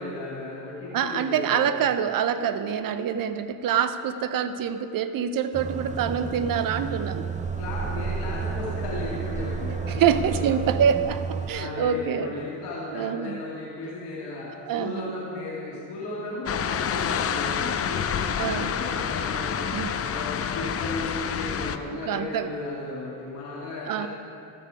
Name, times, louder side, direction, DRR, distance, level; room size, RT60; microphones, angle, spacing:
voice 1, 0.0-1.8 7.6-10.7 11.5-24.1, left 2 dB, 85° left, -8 dB, 2.2 m, -35 dB
voice 2, 0.9-7.3 9.9-12.3 12.9-13.4 14.6-15.2 18.4-18.7 19.7-19.9 21.8-22.5 23.9-24.1, right 8 dB, 60° right, 11 dB, 0.7 m, -26 dB
sound 1, 5.5-11.5, right 5 dB, 20° right, 0.7 m, -31 dB
sound 2, 16.5-21.8, left 8 dB, 35° left, 0.5 m, -28 dB
14.0 x 6.9 x 4.9 m, 2.7 s
supercardioid pair, 75°, 39 cm